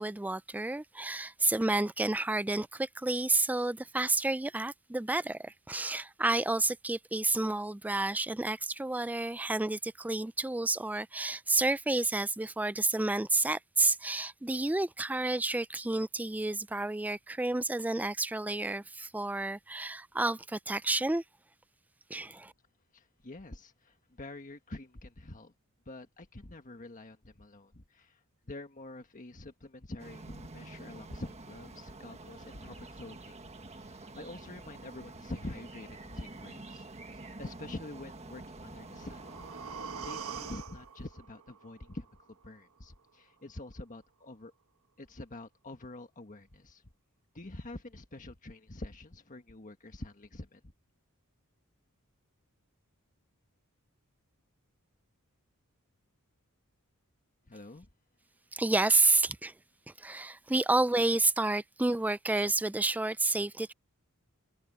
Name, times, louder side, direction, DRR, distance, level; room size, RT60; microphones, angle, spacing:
voice 1, 0.0-21.2 22.1-22.5 58.5-59.5 59.9-63.7, right 2 dB, 5° right, 0.4 m, -30 dB
voice 2, 22.9-25.5 25.8-33.3 33.7-36.9 37.1-39.5 39.9-44.5 45.0-46.8 47.3-50.6 57.5-57.9, left 2 dB, 35° left, 1.5 m, -46 dB
sound 1, 30.0-40.6, right 2 dB, 30° right, 1.5 m, -48 dB
sound 2, 38.6-42.6 43.0-43.1, right 6 dB, 70° right, 1.4 m, -45 dB
head